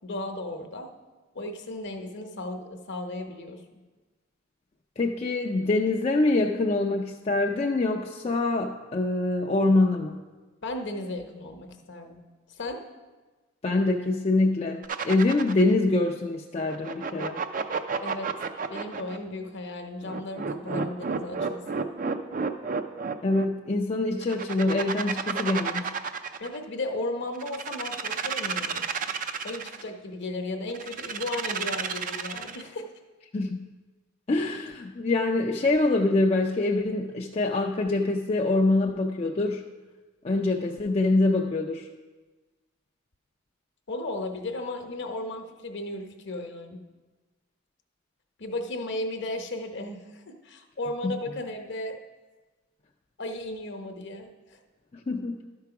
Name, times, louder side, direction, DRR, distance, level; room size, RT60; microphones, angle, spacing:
voice 1, 0.0-0.9 1.3-3.8 10.6-12.2 12.6-12.9 18.0-18.3 18.7-21.9 26.4-28.9 29.4-32.9 43.9-46.8 48.4-52.0 53.2-54.6, left 2 dB, 55° left, 5 dB, 0.9 m, -35 dB
voice 2, 5.0-10.2 13.6-17.4 23.2-25.9 33.3-33.7 34.3-39.6 40.2-41.9 51.0-51.2 55.1-55.5, left 2 dB, 30° left, 1 dB, 0.4 m, -25 dB
sound 1, 14.8-15.7 16.7-19.2 20.0-23.5 24.2-26.6 27.3-29.8 30.7-32.7, right 5 dB, 40° right, 0.4 m, -31 dB
12.0 x 4.7 x 5.8 m, 1.3 s
head